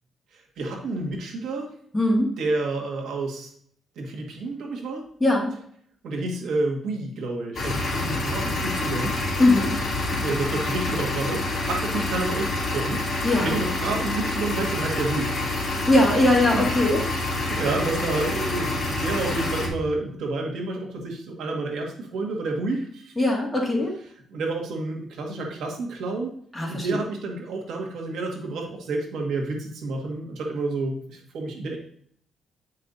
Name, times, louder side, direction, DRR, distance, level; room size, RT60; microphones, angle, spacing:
voice 1, 0.3-1.7 2.4-3.5 4.0-5.0 6.0-9.2 10.2-13.0 13.4-15.9 16.5-16.7 17.1-23.1 24.3-26.4 26.7-31.8, right 2 dB, 80° right, 1 dB, 1.7 m, -29 dB
voice 2, 1.9-2.3 5.2-5.5 9.4-9.8 13.2-13.6 15.9-17.0 23.2-23.9 26.5-27.0, left 2 dB, 10° left, -2 dB, 2.1 m, -20 dB
sound 1, 7.5-19.7, left 2 dB, 40° left, 2.4 m, -27 dB
9.3 x 5.7 x 2.7 m, 0.62 s
cardioid pair, 105°, 0 cm